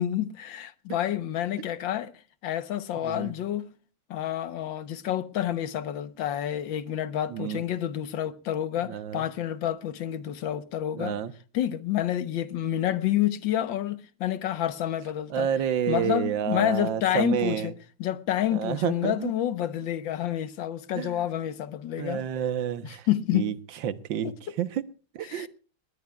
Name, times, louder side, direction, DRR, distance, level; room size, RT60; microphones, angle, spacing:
voice 1, 0.0-2.1 2.4-3.7 4.1-11.2 11.5-15.5 15.9-17.7 18.0-22.2 22.8-23.5 24.2-24.3 25.3-25.5, left 11 dB, 85° left, 1.7 m, -29 dB
voice 2, 3.0-3.3 7.3-7.6 8.9-9.3 10.9-11.3 15.3-17.7 18.5-19.3 21.0-21.2 22.0-23.1 23.3-23.5 23.8-24.3 24.6-24.8 25.2-25.5, right 9 dB, 80° right, 1.7 m, -29 dB
19.5 x 19.5 x 2.3 m
omnidirectional pair, 2.0 m